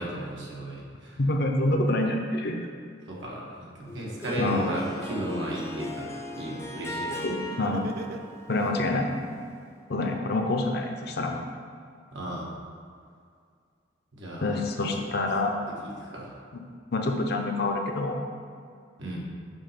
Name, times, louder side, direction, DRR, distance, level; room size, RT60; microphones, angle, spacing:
voice 1, 0.0-1.2 3.1-7.2 9.0-9.1 12.1-12.5 14.1-15.1 15.8-16.3 19.0-19.2, right 1 dB, 75° right, -4 dB, 1.4 m, -35 dB
voice 2, 1.2-2.6 4.4-4.7 7.2-7.9 8.5-9.1 9.9-11.3 14.4-15.5 16.5-16.6 16.9-18.2, left 2 dB, 55° left, 2 dB, 0.7 m, -27 dB
Laughter, 3.8-3.9 4.3-5.7 7.5-8.7, right 4 dB, 55° right, 0.4 m, -40 dB
Harp, 3.9-9.6, left 1 dB, 15° left, 0.5 m, -38 dB
7.1 x 2.9 x 5.7 m, 2.2 s
head